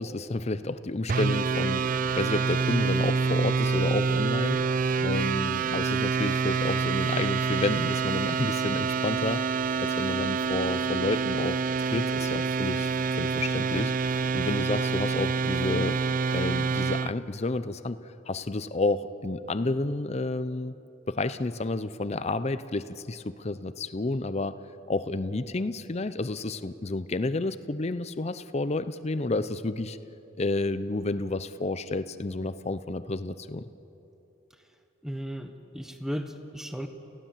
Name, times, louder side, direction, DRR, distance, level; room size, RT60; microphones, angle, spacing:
voice 1, 0.0-18.0 18.3-20.7 21.1-24.6 24.9-30.0 30.4-33.6, left 2 dB, 35° left, 13 dB, 0.6 m, -30 dB
sound 1, 1.1-17.1, right 5 dB, 45° right, 0.4 m, -27 dB
voice 2, 35.0-36.9, equal, 5° right, 7 dB, 1.2 m, -35 dB
29.5 x 16.0 x 7.4 m, 3.0 s
head